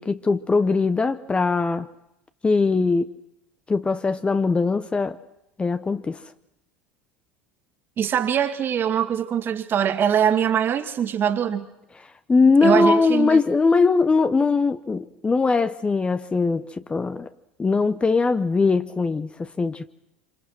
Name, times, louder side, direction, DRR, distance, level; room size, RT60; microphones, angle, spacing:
voice 1, 0.0-1.9 2.4-3.1 3.7-5.2 5.6-6.2 12.3-17.3 17.6-19.9, left 4 dB, 20° left, 12 dB, 1.1 m, -21 dB
voice 2, 8.0-11.7 12.6-13.4, right 8 dB, 35° right, 9 dB, 2.3 m, -22 dB
27.5 x 26.5 x 6.2 m, 0.84 s
figure-of-eight pair, 75°, 6 cm